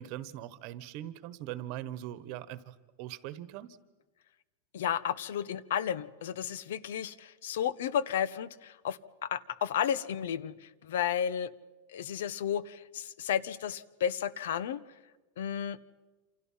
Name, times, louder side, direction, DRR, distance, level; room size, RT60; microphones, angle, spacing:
voice 1, 0.0-3.8, right 13 dB, 40° right, 16 dB, 1.3 m, -41 dB
voice 2, 4.7-11.5 11.9-14.8 15.4-15.8, left 9 dB, 75° left, 18 dB, 1.2 m, -33 dB
28.5 x 27.5 x 5.7 m, 1.2 s
supercardioid pair, 175°, 0 cm